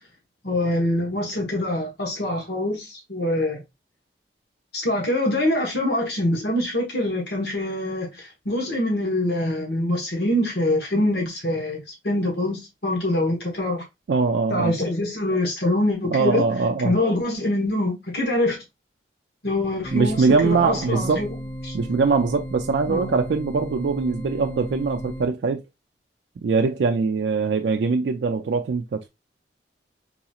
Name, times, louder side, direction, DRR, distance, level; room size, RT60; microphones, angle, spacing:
voice 1, 0.4-3.6 4.7-13.8 14.5-16.4 16.8-18.6 19.4-21.4 21.6-21.7 22.9-23.1, left 1 dB, 65° left, 1.2 m, -24 dB
voice 2, 14.1-14.7 16.1-17.0 19.9-21.2 21.7-25.6 26.4-29.1, right 4 dB, 75° right, 0.4 m, -22 dB
sound 1, 19.8-25.3, equal, 20° left, 0.4 m, -35 dB
3.9 x 2.9 x 2.3 m
head